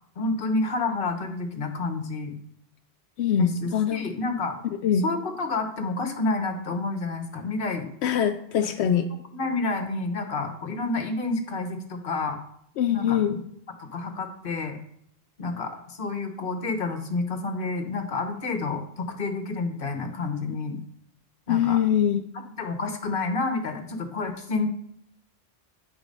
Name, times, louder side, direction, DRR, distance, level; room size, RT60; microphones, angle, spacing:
voice 1, 0.2-2.3 3.4-4.6 5.0-7.9 8.6-8.7 9.3-12.4 12.9-13.4 13.8-14.8 15.4-20.8 21.5-21.8 22.3-24.7, left 3 dB, 55° left, 6 dB, 1.2 m, -29 dB
voice 2, 3.2-4.0 4.8-5.0 8.0-9.1 12.8-13.4 21.5-22.2, left 8 dB, 85° left, 7 dB, 0.9 m, -23 dB
9.0 x 4.9 x 5.2 m, 0.70 s
omnidirectional pair, 1.1 m